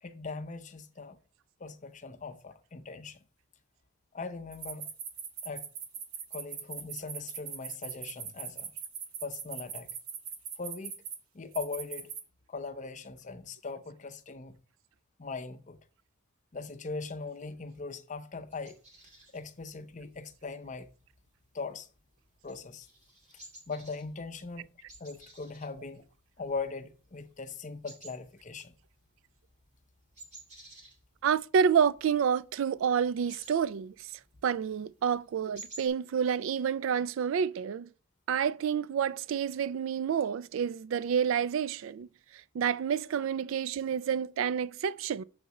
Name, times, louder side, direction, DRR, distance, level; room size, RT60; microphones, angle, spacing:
voice 1, 0.0-1.2 1.6-3.2 4.1-4.9 5.4-5.6 6.3-8.7 9.2-9.9 10.6-11.0 11.3-12.1 12.5-14.6 15.2-15.8 16.5-18.8 19.3-20.9 21.5-21.9 22.4-22.9 23.7-24.7 25.0-26.0 26.4-28.8, left 4 dB, 35° left, 0.6 m, -40 dB
sound 1, 4.5-11.2 11.5-12.2, right 7 dB, 85° right, 1.1 m, -40 dB
sound 2, 18.5-35.9, right 2 dB, 35° right, 2.3 m, -55 dB
voice 2, 31.2-34.1 34.4-37.9 38.3-42.1 42.3-45.2, right 7 dB, 65° right, 0.3 m, -29 dB
7.0 x 4.1 x 4.8 m
head